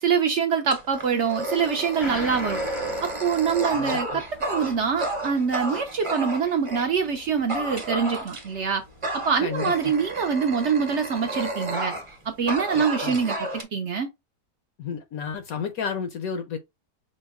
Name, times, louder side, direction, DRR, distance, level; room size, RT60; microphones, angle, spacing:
voice 1, 0.0-2.6 3.0-8.8 9.1-11.9 12.4-14.1, right 6 dB, 65° right, 0.7 m, -25 dB
Dog, 0.7-6.9 7.5-8.6 9.0-12.2 12.5-13.6, right 2 dB, 25° right, 0.7 m, -32 dB
Gong, 2.0-11.0 11.3-11.4, left 2 dB, 30° left, 0.5 m, -42 dB
voice 2, 3.7-4.2 9.4-10.0 12.7-13.2 14.8-16.6, left 6 dB, 70° left, 0.9 m, -32 dB
5.2 x 2.1 x 3.5 m
omnidirectional pair, 1.8 m